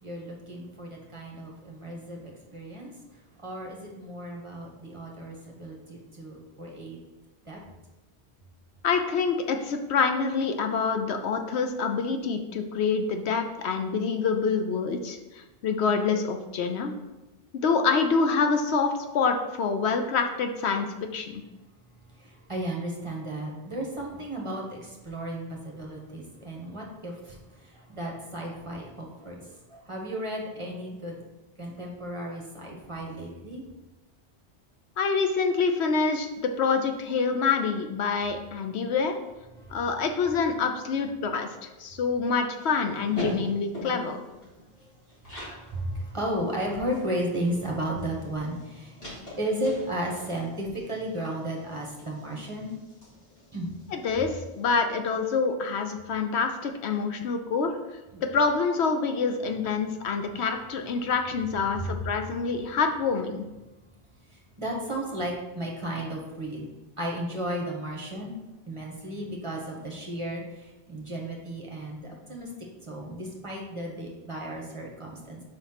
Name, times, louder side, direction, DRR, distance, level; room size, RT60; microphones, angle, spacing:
voice 1, 0.0-2.9 3.4-7.0 7.4-7.6 22.2-29.4 29.7-31.2 31.6-33.6 39.6-39.8 45.4-49.0 49.4-52.8 53.5-53.7 58.1-58.2 61.7-61.9 64.3-66.7 67.0-72.5 72.8-75.4, right 1 dB, 30° right, -1 dB, 1.2 m, -34 dB
voice 2, 8.8-17.0 17.5-21.4 35.0-39.2 39.7-44.2 53.9-57.7 58.2-63.4, left 5 dB, 70° left, 6 dB, 0.9 m, -26 dB
sound 1, 42.5-45.6 46.0-46.1 46.4-54.4, left 1 dB, 55° left, 2.5 m, -41 dB
5.0 x 4.2 x 5.7 m, 1.1 s
omnidirectional pair, 1.2 m